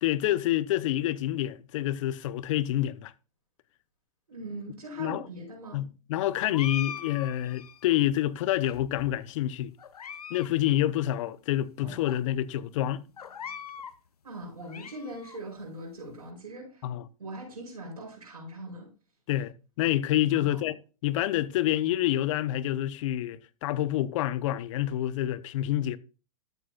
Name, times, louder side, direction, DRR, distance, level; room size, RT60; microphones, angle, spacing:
voice 1, 0.0-3.1 5.0-5.2 5.7-9.7 10.3-13.0 16.8-17.0 19.3-20.8 21.0-26.0, left 13 dB, 55° left, 0.7 m, -27 dB
voice 2, 4.3-5.8 14.2-16.9 17.2-18.9 20.2-20.6, right 1 dB, 90° right, 5.3 m, -41 dB
sound 1, 6.5-8.0 8.6-9.3 9.8-10.5 10.8-10.9 11.6-11.7 12.0-12.2 13.2-14.0 14.4-15.4, left 8 dB, 90° left, 0.8 m, -41 dB
Drum, 11.8-13.7, right 1 dB, 25° right, 4.2 m, -50 dB
12.5 x 8.0 x 2.4 m
hypercardioid pair, 120°, 19 cm